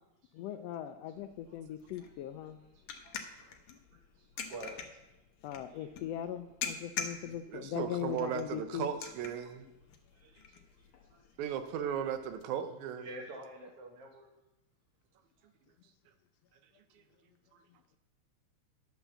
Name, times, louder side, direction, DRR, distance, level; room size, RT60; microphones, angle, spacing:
voice 1, 0.3-2.6 5.4-8.9, left 10 dB, 80° left, 9 dB, 1.5 m, -39 dB
sound 1, 1.1-12.4, left 6 dB, 65° left, 1.4 m, -46 dB
voice 2, 3.0-3.5 4.2-4.9 5.7-5.9 10.1-10.6 11.1-11.2 12.9-14.3, right 2 dB, 55° right, 1 dB, 2.4 m, -48 dB
voice 3, 7.3-9.7 11.4-13.1, right 8 dB, 85° right, 9 dB, 2.2 m, -36 dB
9.9 x 6.2 x 6.9 m, 0.95 s
omnidirectional pair, 3.3 m